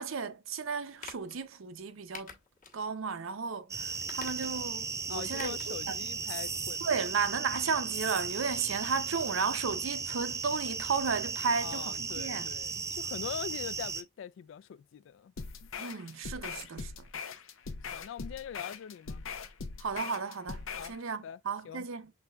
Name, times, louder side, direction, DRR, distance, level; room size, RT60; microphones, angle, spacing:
voice 1, 0.0-2.4 2.7-6.0 6.8-12.5 15.8-17.1 19.8-22.1, right 5 dB, 85° right, 0.6 m, -34 dB
sound 1, 1.0-1.4 2.1-2.8 3.2-3.3 4.0-4.7 5.3-5.8 6.1-6.2, left 5 dB, 40° left, 1.1 m, -46 dB
sound 2, 3.7-14.0, right 5 dB, 15° right, 0.4 m, -36 dB
voice 2, 5.1-6.9 11.6-15.3 15.6-15.7 17.9-19.3 20.8-21.0 21.2-21.4 21.6-21.9, left 8 dB, 70° left, 0.3 m, -42 dB
sound 3, 15.4-21.0, left 5 dB, 85° left, 0.7 m, -41 dB
5.8 x 3.4 x 2.3 m
head